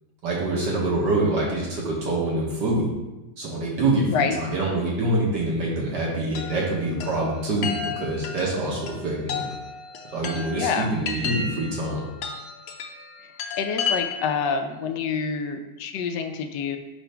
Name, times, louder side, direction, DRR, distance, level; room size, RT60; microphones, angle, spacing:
voice 1, 0.2-2.9 3.4-9.4 10.1-12.0, right 2 dB, 60° right, -4 dB, 1.7 m, -25 dB
Chime, 6.4-14.5, left 6 dB, 90° left, 1.6 m, -33 dB
voice 2, 10.5-10.9 13.6-16.8, left 6 dB, 75° left, 6 dB, 1.1 m, -27 dB
6.7 x 2.5 x 5.5 m, 1.1 s
omnidirectional pair, 2.2 m